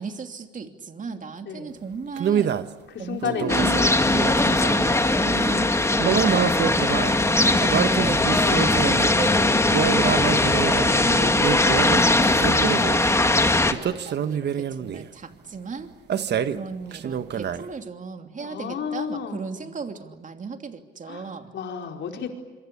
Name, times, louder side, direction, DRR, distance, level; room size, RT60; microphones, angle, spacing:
voice 1, 0.0-2.5 3.0-3.8 4.1-10.2 10.6-15.9 16.3-21.5, right 5 dB, 40° right, 6 dB, 3.0 m, -35 dB
sound 1, 2.2-2.7 3.2-4.8 6.0-7.2 7.6-9.2 9.7-10.9 11.4-12.1 12.4-13.1 13.7-15.1 16.1-16.6 16.9-17.7, right 8 dB, 60° right, 1.3 m, -26 dB
voice 2, 2.9-4.0 8.4-8.8 11.0-11.3 18.4-19.6 21.1-22.4, left 7 dB, 65° left, 3 dB, 4.8 m, -32 dB
sound 2, 3.5-13.7, left 2 dB, 15° left, 2.1 m, -20 dB
26.0 x 24.5 x 8.5 m, 1.3 s
cardioid pair, 90°, 20 cm